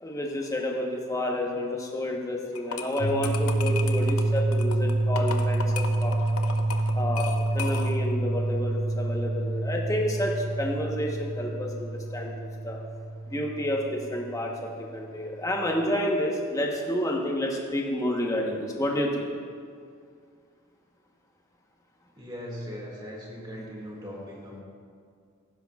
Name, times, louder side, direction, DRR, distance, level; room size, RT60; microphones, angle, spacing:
voice 1, 0.0-6.1 6.9-12.8 13.3-19.3, left 1 dB, 15° left, -1 dB, 1.1 m, -30 dB
sound 1, 2.6-8.1, left 5 dB, 85° left, 0.7 m, -36 dB
sound 2, 3.0-14.9, right 2 dB, 60° left, 2.5 m, -28 dB
voice 2, 22.2-24.6, equal, 20° right, -3 dB, 2.1 m, -39 dB
17.0 x 9.8 x 2.4 m, 2.2 s
head